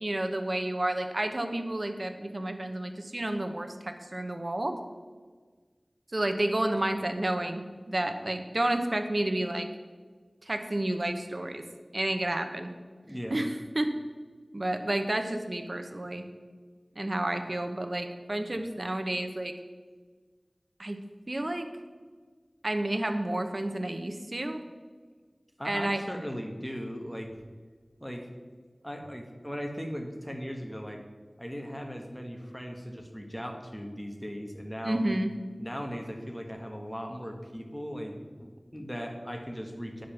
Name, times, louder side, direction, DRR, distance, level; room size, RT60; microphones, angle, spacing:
voice 1, 0.0-4.8 6.1-9.7 10.4-11.6 11.9-12.7 13.3-13.9 14.5-16.2 17.0-19.5 20.8-21.0 21.3-21.7 22.6-24.6 25.6-26.0 34.8-35.3, right 1 dB, 50° right, 6 dB, 1.0 m, -30 dB
voice 2, 13.0-13.4 25.6-27.3 28.0-28.3 28.8-31.0 31.4-35.0 35.6-40.1, equal, 5° left, 3 dB, 1.5 m, -38 dB
9.8 x 5.2 x 7.0 m, 1.5 s
wide cardioid pair, 45°, 0 cm